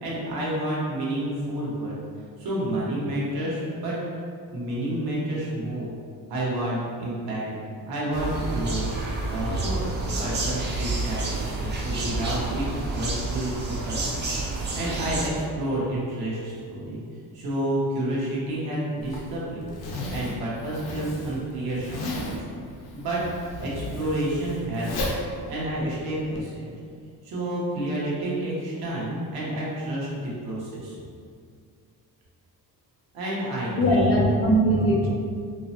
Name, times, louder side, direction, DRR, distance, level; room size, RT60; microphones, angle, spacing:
voice 1, 0.0-1.9 2.4-4.0 4.5-5.9 6.3-7.5 7.9-8.9 9.3-9.8 10.2-14.2 14.5-17.0 17.3-19.6 20.1-22.4 22.9-23.2 23.6-25.1 25.5-26.7 27.2-31.0 33.1-34.3, right 1 dB, 70° right, -6 dB, 1.2 m, -29 dB
sound 1, 8.1-15.3, right 2 dB, 30° right, 0.5 m, -29 dB
Zipper (clothing), 19.0-26.4, left 1 dB, 75° left, 0.7 m, -35 dB
voice 2, 33.8-35.1, equal, 35° left, -2 dB, 0.5 m, -20 dB
4.5 x 2.1 x 2.8 m, 2.2 s
cardioid pair, 140°, 38 cm